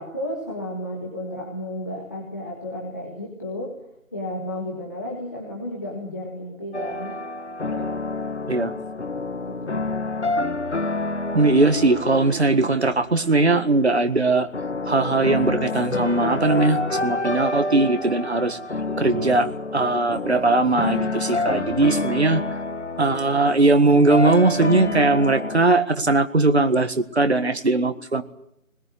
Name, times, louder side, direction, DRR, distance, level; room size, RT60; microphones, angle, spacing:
voice 1, 0.0-3.7 4.1-7.2 7.7-8.1 9.3-9.8, left 1 dB, 15° left, -3 dB, 1.8 m, -33 dB
sound 1, 6.7-25.6, left 2 dB, 55° left, 1.4 m, -28 dB
voice 2, 11.3-14.5 14.9-18.6 18.9-22.4 23.0-28.2, right 3 dB, 50° right, 9 dB, 1.8 m, -20 dB
21.0 x 20.5 x 9.8 m, 0.76 s
figure-of-eight pair, 175°, 41 cm